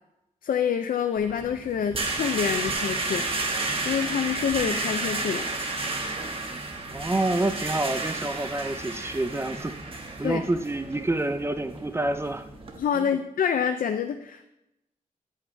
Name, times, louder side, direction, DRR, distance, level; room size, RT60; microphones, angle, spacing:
voice 1, 0.4-3.3 3.8-5.4 10.2-10.4 12.8-14.5, left 8 dB, 85° left, 7 dB, 0.5 m, -27 dB
sound 1, 1.2-12.8, right 3 dB, 40° right, 1.3 m, -32 dB
voice 2, 6.9-9.7 10.2-12.5 13.0-13.1, right 2 dB, 20° right, 9 dB, 0.5 m, -28 dB
10.5 x 8.2 x 3.3 m, 0.89 s
wide cardioid pair, 115°, 14 cm